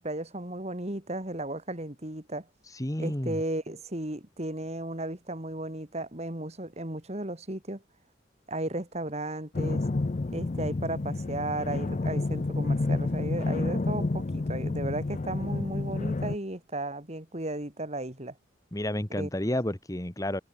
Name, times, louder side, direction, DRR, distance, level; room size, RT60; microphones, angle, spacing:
voice 1, 0.0-2.5 3.0-7.8 8.5-9.8 10.3-18.3 19.2-19.3, right 1 dB, 35° right, 2.7 m, -35 dB
voice 2, 2.7-3.4 18.7-20.4, left 1 dB, 20° left, 1.7 m, -31 dB
sound 1, 9.5-16.4, left 2 dB, 40° left, 0.5 m, -29 dB
head